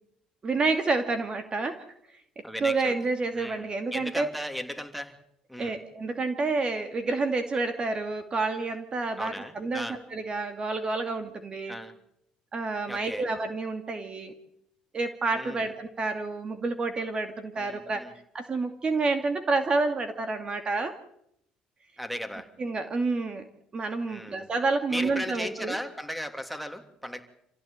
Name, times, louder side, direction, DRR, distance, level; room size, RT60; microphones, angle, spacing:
voice 1, 0.4-1.8 2.6-4.3 5.6-11.8 12.5-14.3 14.9-18.1 18.3-21.0 22.6-23.4 23.7-25.8, right 3 dB, 35° right, 8 dB, 2.5 m, -29 dB
voice 2, 2.4-2.9 3.3-5.2 5.5-5.8 9.2-10.0 11.7-11.9 12.9-13.2 15.3-15.7 17.6-18.1 22.0-22.5 24.0-24.5 24.9-27.2, equal, ahead, 8 dB, 3.1 m, -36 dB
27.0 x 16.0 x 9.1 m, 0.76 s
supercardioid pair, 75°, 3 cm